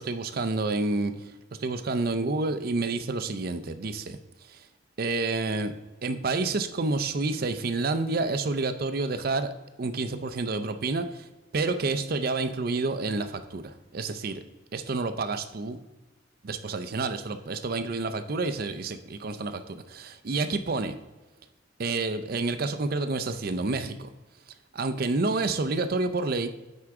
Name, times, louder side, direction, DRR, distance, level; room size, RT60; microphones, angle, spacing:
voice 1, 0.0-1.3 1.6-4.2 4.5-4.7 5.0-5.7 6.0-9.5 9.8-11.3 11.5-14.4 14.7-15.8 16.4-20.9 21.8-24.1 24.7-26.5, right 3 dB, 50° right, 10 dB, 0.5 m, -29 dB
9.4 x 4.7 x 3.6 m, 1.1 s
head